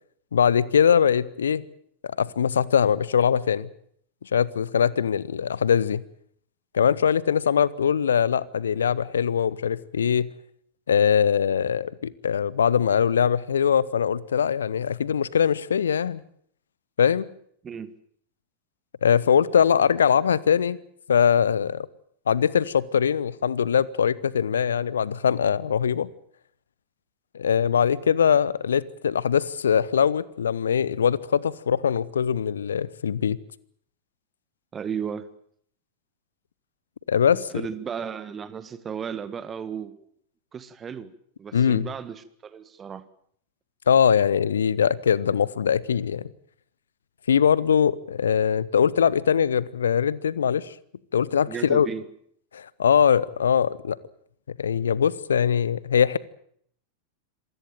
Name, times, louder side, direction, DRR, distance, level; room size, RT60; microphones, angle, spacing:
voice 1, 0.3-1.6 2.0-3.7 4.3-6.0 6.7-10.3 10.9-16.2 17.0-17.3 19.0-20.8 21.1-21.9 22.3-26.1 27.3-33.4 37.1-37.5 41.5-41.9 43.9-46.3 47.3-50.7 51.1-51.9 52.5-54.0 54.5-56.2, left 7 dB, 70° left, 0.9 m, -22 dB
voice 2, 34.7-35.3 37.5-40.0 40.5-41.1 41.4-43.0 51.5-52.1, right 7 dB, 20° right, 1.6 m, -34 dB
26.5 x 16.0 x 9.1 m
figure-of-eight pair, 90°, 0 cm